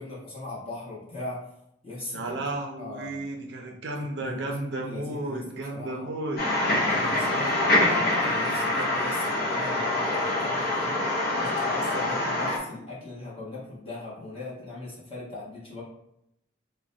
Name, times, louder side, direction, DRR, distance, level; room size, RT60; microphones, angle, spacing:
voice 1, 0.0-1.4 1.8-2.4 2.8-3.2 4.2-6.1 6.8-11.0 11.3-15.8, left 2 dB, 30° left, -7 dB, 1.1 m, -39 dB
voice 2, 2.1-6.4 7.3-7.7, right 2 dB, 60° right, 2 dB, 0.5 m, -33 dB
sound 1, 6.4-12.6, left 1 dB, 50° left, 0.7 m, -25 dB
2.9 x 2.2 x 3.8 m, 0.79 s
head